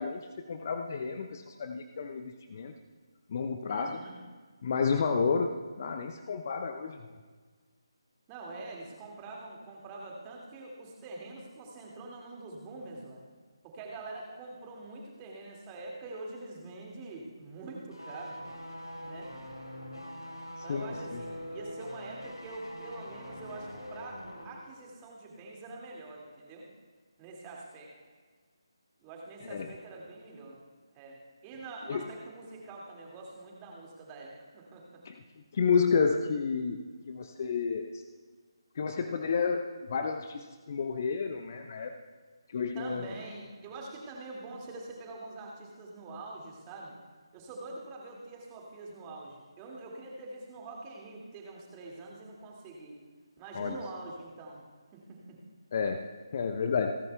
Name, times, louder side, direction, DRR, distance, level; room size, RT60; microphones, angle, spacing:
voice 1, 0.0-2.7 3.3-4.0 4.6-7.0 20.7-21.2 29.4-29.7 31.9-32.1 35.0-35.2 35.5-38.0 38.8-41.9 42.5-43.1 53.5-53.8 55.7-56.1 56.3-57.0, left 5 dB, 35° left, 6 dB, 0.6 m, -31 dB
voice 2, 3.7-4.2 8.3-13.2 13.6-18.4 19.0-19.3 20.6-26.7 27.2-27.9 29.0-30.6 30.9-35.0 42.7-47.0 47.3-53.0 53.4-54.6 54.9-55.4, right 2 dB, 15° right, -1 dB, 2.2 m, -45 dB
sound 1, 17.9-24.6 24.9-25.0, equal, 80° left, 3.3 m, -43 dB
28.5 x 10.5 x 2.3 m, 1.5 s
figure-of-eight pair, 150°, 3 cm